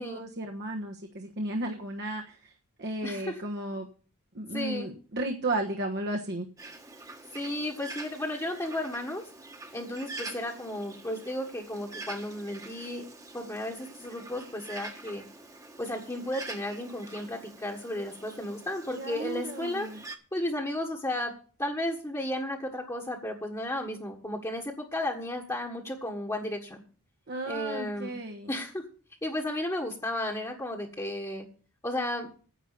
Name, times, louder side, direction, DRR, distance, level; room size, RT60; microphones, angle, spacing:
voice 1, 0.0-2.5 2.8-3.9 4.3-6.5 19.0-20.0 27.3-28.5, right 2 dB, 50° right, 1.3 m, -34 dB
voice 2, 3.0-3.4 4.5-4.9 7.3-9.2 9.7-13.1 13.3-15.2 15.8-19.9 20.3-21.3 21.6-26.8 27.4-28.1 28.5-28.8 29.2-31.4 31.8-32.3, left 1 dB, 15° left, 1.5 m, -33 dB
Bird, 6.6-20.1, right 2 dB, 15° right, 1.4 m, -45 dB
10.0 x 8.4 x 6.7 m
head